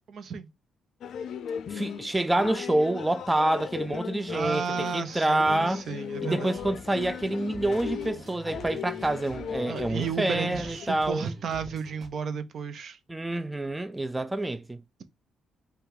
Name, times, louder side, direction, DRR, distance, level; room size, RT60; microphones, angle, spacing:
voice 1, 0.1-0.5 4.3-6.6 9.7-13.0, right 6 dB, 60° right, 0.7 m, -33 dB
sound 1, 1.0-10.9, left 8 dB, 65° left, 0.4 m, -38 dB
voice 2, 1.7-5.9 6.2-11.3 13.1-14.8, right 1 dB, 10° right, 0.3 m, -27 dB
sound 2, 6.6-12.1, right 4 dB, 40° right, 1.0 m, -46 dB
5.5 x 2.4 x 3.9 m
cardioid pair, 90°, 0 cm